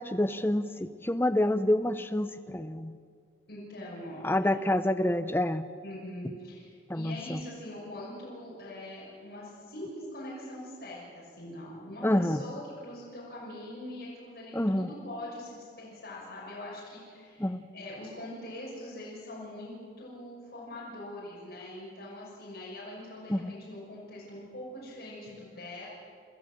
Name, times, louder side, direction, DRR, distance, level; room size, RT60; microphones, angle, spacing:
voice 1, 0.0-2.9 4.2-5.7 6.9-7.4 12.0-12.4 14.5-14.9 17.4-17.6 23.3-23.5, left 1 dB, 10° left, 10 dB, 0.6 m, -27 dB
voice 2, 3.5-4.6 5.8-17.5 17.7-25.9, left 1 dB, 60° left, -7 dB, 6.4 m, -43 dB
28.0 x 14.0 x 7.6 m, 2.2 s
head